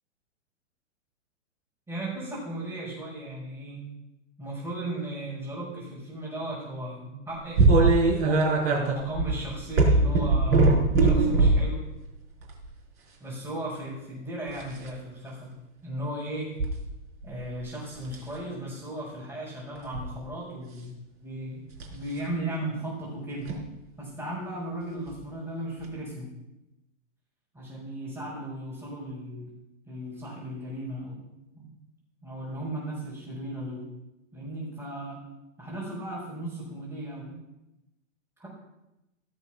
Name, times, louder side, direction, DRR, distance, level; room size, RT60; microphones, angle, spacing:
voice 1, 1.9-3.9 4.4-7.6 8.7-11.8 13.2-15.5 15.8-16.5 17.2-20.9 21.2-23.5 24.0-26.3 27.5-29.5 29.9-31.2 31.5-31.7 32.2-33.9 34.3-35.2 35.6-37.4 38.4-38.5, right 1 dB, 10° right, -8 dB, 5.6 m, -36 dB
sound 1, 7.6-11.7 12.4-12.7 14.5-14.9 16.6-16.7 17.2-17.6 18.0-18.3 19.7-20.1 21.7-21.9 23.4-23.6 25.1-25.2 25.8-25.9, right 3 dB, 50° right, 4.8 m, -21 dB
16.5 x 7.1 x 6.2 m, 0.94 s
hypercardioid pair, 120°, 37 cm